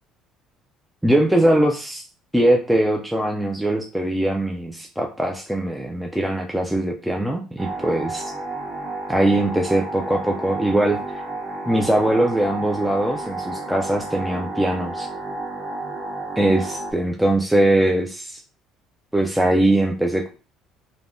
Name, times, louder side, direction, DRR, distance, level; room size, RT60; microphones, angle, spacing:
voice 1, 1.0-2.0 2.3-8.3 9.1-11.2 11.7-15.1 16.4-18.4 19.1-20.3, right 1 dB, 5° right, 1 dB, 0.3 m, -21 dB
sound 1, 7.6-16.9, right 2 dB, 25° right, 1.3 m, -31 dB
3.3 x 2.2 x 2.5 m, 0.36 s
cardioid pair, 105°, 0 cm